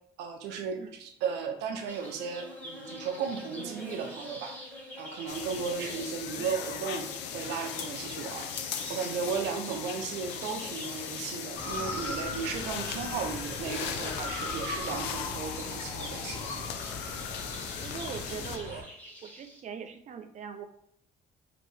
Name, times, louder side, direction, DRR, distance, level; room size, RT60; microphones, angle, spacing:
voice 1, 0.2-4.5 5.0-16.5, right 6 dB, 85° right, 5 dB, 0.7 m, -35 dB
sound 1, 1.9-19.6, equal, 10° left, 1.4 m, -46 dB
sound 2, 5.3-18.6, left 9 dB, 90° left, 0.5 m, -39 dB
Motor vehicle (road) / Siren, 11.5-18.8, left 2 dB, 40° left, 1.4 m, -39 dB
voice 2, 11.8-12.2 17.8-18.9 19.2-20.6, right 7 dB, 45° right, 8 dB, 0.5 m, -41 dB
4.2 x 2.8 x 3.3 m, 0.70 s
cardioid pair, 110°, 17 cm